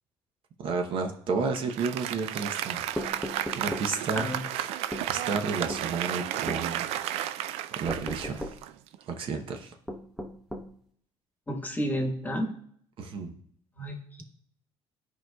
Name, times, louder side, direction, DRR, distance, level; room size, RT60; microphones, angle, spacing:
voice 1, 0.6-2.9 3.6-4.3 4.6-4.7 5.1-6.9 7.7-8.5 9.1-9.7 13.0-13.4, right 4 dB, 60° right, 4 dB, 0.8 m, -31 dB
Applause, 1.5-9.2, right 12 dB, 85° right, 0.4 m, -33 dB
sound 1, 3.0-3.9 4.9-5.1 5.7-5.9 6.5-6.7 7.9-8.6 9.9-10.7, equal, ahead, 0.8 m, -36 dB
voice 2, 11.5-12.5 13.8-14.2, equal, 15° left, 4 dB, 1.2 m, -31 dB
13.5 x 4.6 x 2.3 m, 0.63 s
cardioid pair, 125°, 10 cm